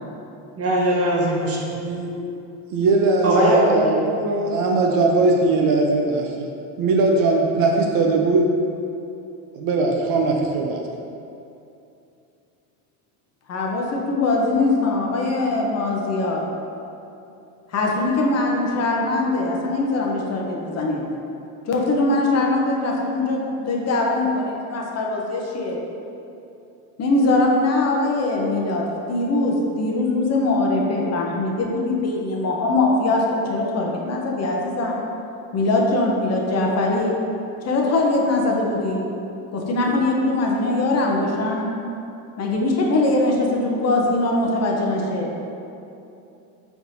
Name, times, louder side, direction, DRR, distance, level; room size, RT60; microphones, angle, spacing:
voice 1, 0.6-1.6 3.2-4.6, right 1 dB, 35° right, -3 dB, 1.0 m, -20 dB
voice 2, 1.8-2.2 2.7-3.9 4.4-6.5 6.8-8.5 9.5-10.8, right 3 dB, 55° right, 1 dB, 0.6 m, -20 dB
voice 3, 13.5-16.5 17.7-21.0 21.7-25.8 27.0-33.2 33.5-35.0 35.5-37.1 37.6-39.1 39.5-41.7 42.4-45.3, left 2 dB, 40° left, -1 dB, 0.7 m, -22 dB
4.6 x 4.0 x 2.7 m, 2.7 s
supercardioid pair, 100°, 42 cm